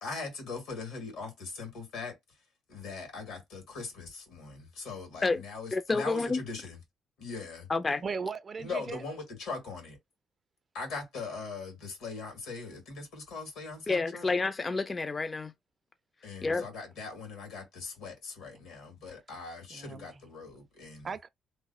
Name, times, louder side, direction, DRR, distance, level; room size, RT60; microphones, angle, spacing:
voice 1, 0.0-2.2 2.7-6.8 7.2-7.7 8.6-10.0 10.7-14.3 16.2-21.1, left 4 dB, 90° left, 1.9 m, -40 dB
voice 2, 5.7-6.4 7.7-8.0 13.9-15.5 16.4-16.6, left 3 dB, 30° left, 0.4 m, -29 dB
voice 3, 8.0-9.0 19.1-19.2 19.7-20.1 21.0-21.3, right 5 dB, 40° right, 0.4 m, -37 dB
3.1 x 2.2 x 4.1 m
cardioid pair, 90°, 0 cm